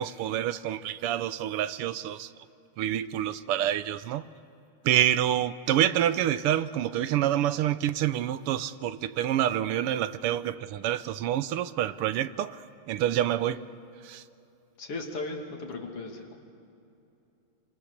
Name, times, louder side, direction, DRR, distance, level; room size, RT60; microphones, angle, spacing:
voice 1, 0.0-2.3 2.8-4.3 4.8-13.7 14.0-14.2, right 11 dB, 90° right, 1.7 m, -27 dB
voice 2, 14.8-16.4, left 3 dB, 85° left, 3.4 m, -36 dB
27.5 x 26.0 x 6.6 m
omnidirectional pair, 2.4 m